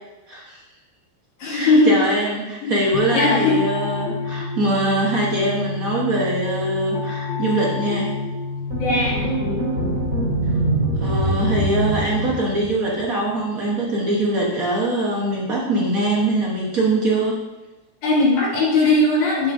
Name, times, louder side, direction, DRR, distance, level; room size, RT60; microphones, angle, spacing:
voice 1, 0.3-0.6 1.5-8.1 11.0-17.3, right 2 dB, 75° right, -4 dB, 0.7 m, -22 dB
voice 2, 1.4-2.0 2.6-2.8 3.1-3.6 8.8-9.3 18.0-19.5, left 2 dB, 70° left, -6 dB, 3.7 m, -18 dB
sound 1, 2.9-10.3, left 5 dB, 85° left, 2.3 m, -29 dB
sound 2, 8.7-13.0, right 1 dB, 35° right, 3.1 m, -23 dB
12.0 x 7.0 x 2.7 m, 1.1 s
omnidirectional pair, 3.6 m